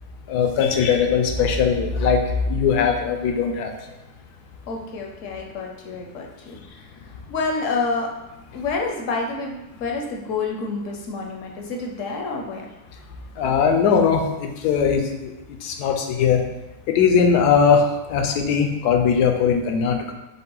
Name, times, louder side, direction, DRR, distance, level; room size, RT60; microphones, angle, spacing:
voice 1, 0.3-2.2 2.5-3.7 13.4-15.3 15.6-16.4 16.9-17.8 18.1-20.1, left 6 dB, 85° left, 4 dB, 1.1 m, -19 dB
voice 2, 4.7-8.1 8.5-12.7, left 4 dB, 65° left, 1 dB, 0.9 m, -28 dB
5.5 x 2.1 x 3.8 m, 1.0 s
omnidirectional pair, 1.7 m